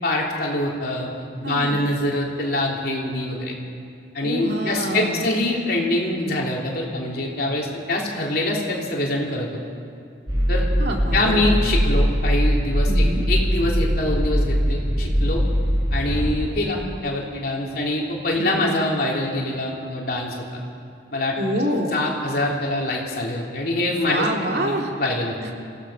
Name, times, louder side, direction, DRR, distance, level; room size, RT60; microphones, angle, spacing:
voice 1, 0.0-3.6 4.1-9.6 10.5-10.7 11.1-15.4 15.9-20.6 21.1-21.4 21.9-24.3 24.5-25.4, left 1 dB, 55° left, -2 dB, 3.5 m, -24 dB
voice 2, 1.4-1.8 4.2-5.3 10.8-11.4 12.8-13.3 18.3-18.7 21.4-22.0 23.9-24.9 25.4-25.5, equal, 60° right, 1 dB, 2.5 m, -27 dB
sound 1, 10.3-16.5, equal, 25° right, 7.3 m, -21 dB
27.5 x 17.0 x 5.8 m, 2.5 s
head